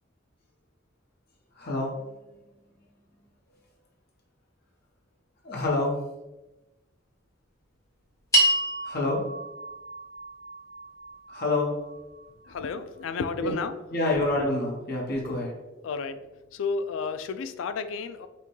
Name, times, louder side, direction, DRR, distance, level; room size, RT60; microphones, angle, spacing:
voice 1, 1.6-2.1 5.4-5.9 8.8-9.2 11.3-11.7 13.4-13.5 13.9-15.5, left 2 dB, 55° left, -2 dB, 0.9 m, -27 dB
sound 1, 8.3-12.8, right 1 dB, 15° left, 1.1 m, -29 dB
voice 2, 12.5-13.7 15.8-18.3, left 5 dB, 90° left, 10 dB, 0.3 m, -32 dB
5.6 x 2.2 x 3.1 m, 1.0 s
head